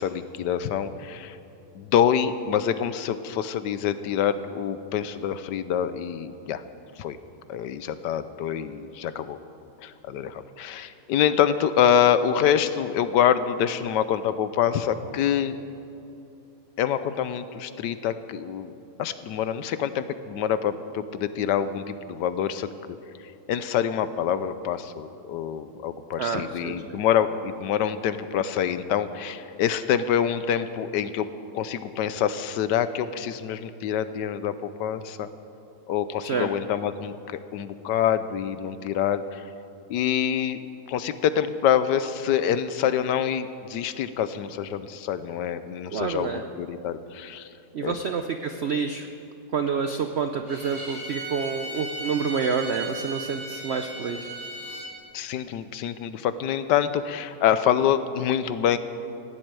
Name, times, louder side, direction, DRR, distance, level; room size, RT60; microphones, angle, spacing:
voice 1, 0.0-1.4 1.7-6.6 7.0-7.2 7.5-9.4 9.8-15.6 16.8-18.7 19.0-22.7 23.5-31.3 31.5-35.3 35.9-39.4 39.9-40.6 40.9-46.3 46.6-47.5 47.8-48.0 55.1-58.8, left 9 dB, 80° left, 12 dB, 1.3 m, -26 dB
voice 2, 26.2-26.8 36.2-36.5 45.9-46.5 47.7-49.1 49.5-54.3, right 5 dB, 70° right, 6 dB, 0.6 m, -28 dB
Bowed string instrument, 50.4-54.9, right 2 dB, 25° right, 3.6 m, -36 dB
16.0 x 7.8 x 8.9 m, 2.8 s
omnidirectional pair, 1.9 m